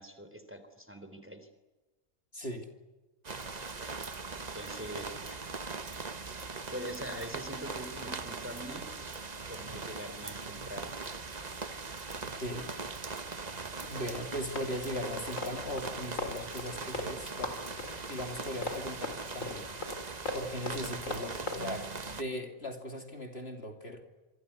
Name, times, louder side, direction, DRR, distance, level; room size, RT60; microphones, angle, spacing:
voice 1, 0.0-1.5 4.3-5.4 6.7-8.8 9.5-10.9, equal, 10° right, 9 dB, 3.5 m, -43 dB
voice 2, 2.3-2.7 12.2-12.7 13.9-19.8 20.3-24.0, left 1 dB, 45° left, 4 dB, 2.9 m, -39 dB
sound 1, 3.2-22.2, right 4 dB, 30° right, 1.3 m, -40 dB
Run, 13.8-17.1 17.4-21.6, left 2 dB, 65° left, 4.2 m, -38 dB
27.0 x 24.5 x 8.4 m, 1.2 s
omnidirectional pair, 1.4 m